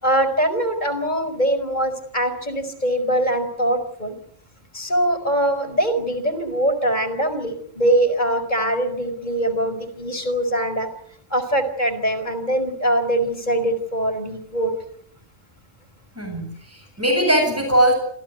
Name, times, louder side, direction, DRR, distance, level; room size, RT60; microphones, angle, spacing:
voice 1, 0.0-4.2 4.7-10.9 11.3-14.7, right 1 dB, 40° left, 9 dB, 4.7 m, -22 dB
voice 2, 16.2-17.9, right 1 dB, 10° right, 2 dB, 7.7 m, -20 dB
27.5 x 16.0 x 9.3 m, 0.65 s
omnidirectional pair, 1.2 m